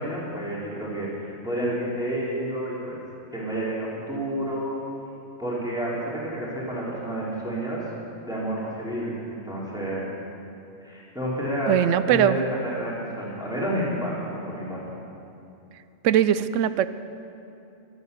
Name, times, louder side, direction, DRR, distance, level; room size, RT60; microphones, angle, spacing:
voice 1, 0.0-3.0 3.3-4.7 5.4-7.8 8.2-10.0 10.8-11.7 12.1-14.8, right 1 dB, 5° right, -7 dB, 3.2 m, -30 dB
voice 2, 11.7-12.4 16.0-16.9, right 10 dB, 90° right, 14 dB, 0.9 m, -20 dB
23.5 x 8.5 x 6.7 m, 2.8 s
omnidirectional pair, 1.3 m